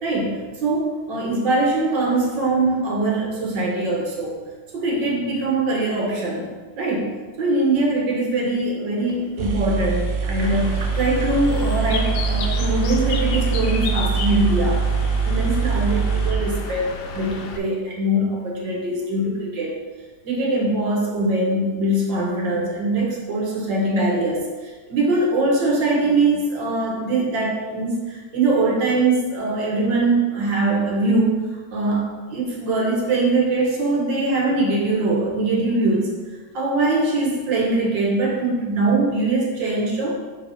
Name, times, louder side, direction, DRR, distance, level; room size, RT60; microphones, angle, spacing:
voice 1, 0.0-4.4 4.7-6.5 6.8-14.8 15.3-19.7 20.2-31.4 31.7-36.1 36.5-40.1, right 2 dB, 80° right, -3 dB, 2.1 m, -22 dB
sound 1, 9.1-9.2 9.4-17.2, right 5 dB, 55° right, 0.9 m, -23 dB
Bird, 10.4-17.6, left 5 dB, 70° left, 1.2 m, -32 dB
5.5 x 3.8 x 5.5 m, 1.3 s
omnidirectional pair, 1.9 m